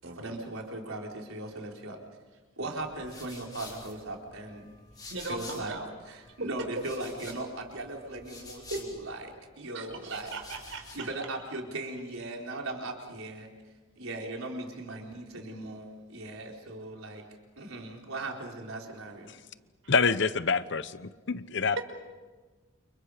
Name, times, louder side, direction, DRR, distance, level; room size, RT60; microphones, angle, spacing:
voice 1, 0.2-2.0 2.6-4.7 5.3-5.8 6.1-10.4 10.9-13.5 14.0-17.2 17.6-19.3, right 2 dB, 85° right, 0 dB, 4.5 m, -38 dB
sound 1, 2.8-5.9 6.2-9.4 9.9-11.1, left 3 dB, 20° left, 5.7 m, -49 dB
voice 2, 5.1-5.9 8.7-8.8 9.7-11.1, right 3 dB, 70° right, 4 dB, 5.5 m, -39 dB
voice 3, 19.9-21.8, left 5 dB, 55° left, 14 dB, 0.9 m, -27 dB
29.5 x 29.5 x 5.1 m, 1.3 s
head